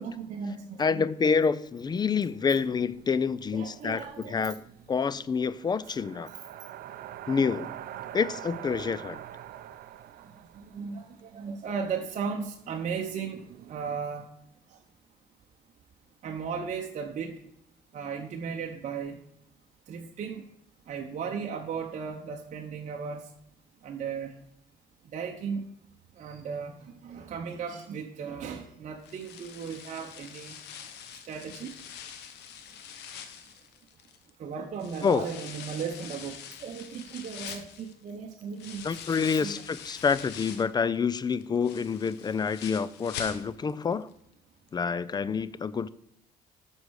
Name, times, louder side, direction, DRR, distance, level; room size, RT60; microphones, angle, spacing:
voice 1, 0.0-0.8 3.5-4.5 10.0-14.3 14.7-14.8 16.2-17.4 17.9-19.2 19.9-20.4 20.8-23.3 23.8-24.4 25.0-25.7 26.1-30.6 31.2-31.8 33.3-33.7 34.0-34.1 34.4-39.0 39.4-39.5, right 6 dB, 45° right, 1.0 m, -36 dB
voice 2, 0.8-4.6 4.9-6.3 7.3-7.7 8.1-9.2 35.0-35.3 38.8-44.1 44.7-45.9, left 5 dB, 25° left, 0.4 m, -27 dB
sound 1, 1.8-11.3 11.7-11.8 12.3-14.0, right 11 dB, 60° right, 0.5 m, -45 dB
sound 2, 29.0-34.3 34.8-40.8 41.2-43.8 44.1-44.2 44.7-44.8, left 8 dB, 85° left, 1.1 m, -44 dB
8.0 x 5.4 x 6.3 m
cardioid pair, 110°, 17 cm